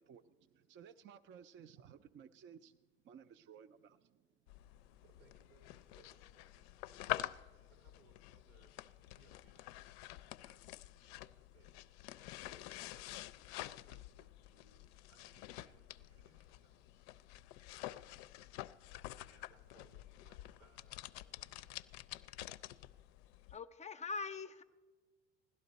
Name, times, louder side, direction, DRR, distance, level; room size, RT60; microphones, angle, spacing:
voice 1, 0.0-4.3 4.9-5.0, right 8 dB, 35° right, 11 dB, 0.5 m, -58 dB
sound 1, 4.5-23.6, left 15 dB, 75° left, 0.5 m, -48 dB
voice 2, 5.0-8.8 9.1-10.6 10.9-14.8 15.1-17.1 19.2-22.2, right 4 dB, 85° right, 5 dB, 2.3 m, -71 dB
voice 3, 23.5-24.6, left 4 dB, 20° left, 9 dB, 0.5 m, -42 dB
16.0 x 12.0 x 4.0 m, 1.4 s
hypercardioid pair, 85°, 32 cm